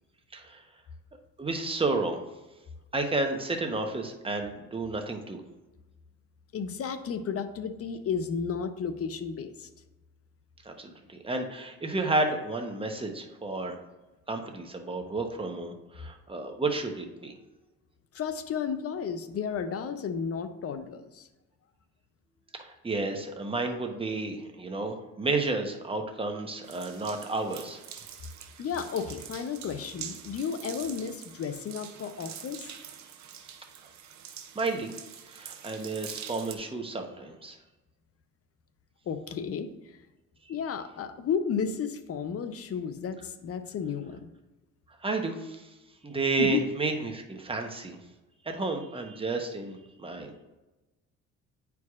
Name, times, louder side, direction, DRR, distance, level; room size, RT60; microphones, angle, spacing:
voice 1, 0.3-0.6 1.4-2.2 2.9-5.4 10.6-13.8 14.3-17.3 22.6-27.8 34.5-34.9 35.3-37.6 45.0-45.7 46.0-48.0 48.4-50.3, right 3 dB, 20° right, 4 dB, 0.9 m, -31 dB
voice 2, 6.5-9.7 18.1-21.3 28.6-32.6 39.1-40.0 40.5-44.3 46.4-46.6, left 6 dB, 50° left, 10 dB, 0.6 m, -33 dB
sound 1, 26.6-36.6, right 9 dB, 65° right, 0.7 m, -45 dB
9.3 x 4.7 x 2.4 m, 1.1 s
cardioid pair, 90°, 30 cm